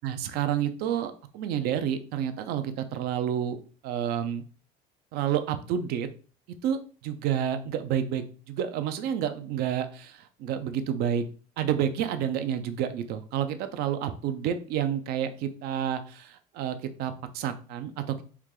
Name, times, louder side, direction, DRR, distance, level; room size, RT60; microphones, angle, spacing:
voice 1, 0.0-3.6 3.8-4.4 5.1-6.1 6.6-11.2 11.6-18.2, right 9 dB, 70° right, 9 dB, 0.6 m, -29 dB
4.6 x 2.8 x 3.7 m, 0.40 s
cardioid pair, 135°, 17 cm